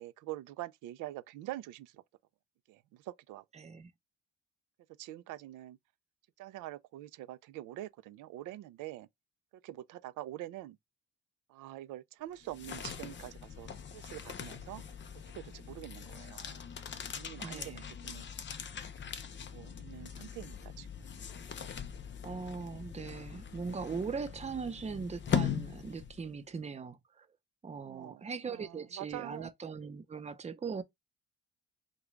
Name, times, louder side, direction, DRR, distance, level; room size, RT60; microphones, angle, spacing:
voice 1, 0.0-2.0 2.7-3.4 5.0-5.8 6.4-9.1 9.6-10.8 11.5-14.8 15.3-16.6 17.1-18.3 19.5-20.9 27.8-29.5, right 15 dB, 85° right, 0.5 m, -45 dB
voice 2, 3.5-3.9 17.4-17.9 22.2-27.3 27.6-30.8, right 5 dB, 20° right, 0.6 m, -40 dB
sound 1, 12.3-26.4, left 7 dB, 40° left, 0.6 m, -40 dB
3.7 x 2.3 x 3.1 m
cardioid pair, 85°, 30 cm